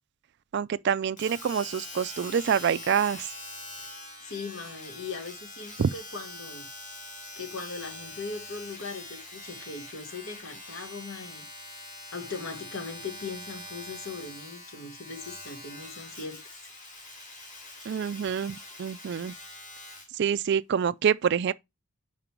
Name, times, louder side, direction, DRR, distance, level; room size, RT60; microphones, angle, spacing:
voice 1, 0.5-3.3 5.8-5.9 17.9-19.3 20.1-21.5, right 7 dB, 50° right, 0.3 m, -26 dB
Domestic sounds home sounds, 1.2-20.2 20.8-20.9, left 2 dB, 35° left, 1.9 m, -44 dB
voice 2, 3.8-6.7 7.4-16.7, left 4 dB, 65° left, 1.4 m, -40 dB
5.2 x 4.9 x 4.4 m
head